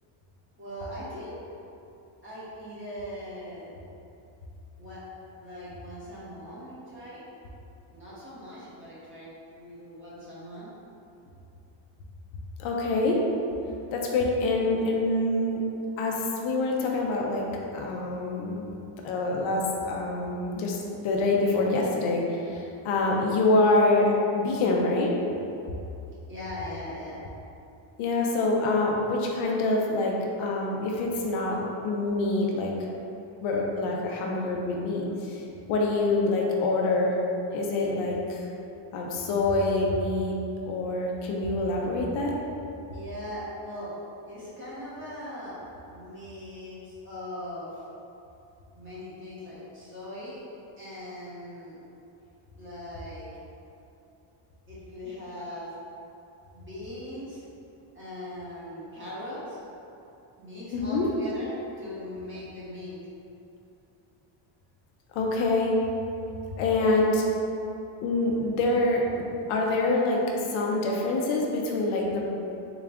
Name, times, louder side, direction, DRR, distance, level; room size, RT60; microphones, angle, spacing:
voice 1, 0.6-1.3 2.2-3.7 4.8-5.0 5.4-7.3 7.9-10.7 26.3-27.2 42.9-44.0 44.3-45.6 45.9-47.7 48.7-50.4 50.8-51.8 52.5-53.3 54.7-55.7 56.5-57.4 57.9-59.6 60.4-63.0, left 1 dB, 25° right, -10 dB, 1.1 m, -40 dB
voice 2, 12.6-13.2 13.9-15.6 16.0-17.4 17.7-18.7 19.0-25.1 28.0-32.7 33.4-35.4 35.7-37.2 37.5-38.4 38.9-40.4 40.7-42.3 60.7-61.1 65.1-65.8 66.6-67.2 68.0-72.2, left 2 dB, 70° left, -1 dB, 0.7 m, -26 dB
3.9 x 2.4 x 3.3 m, 2.8 s
cardioid pair, 145°, 50 cm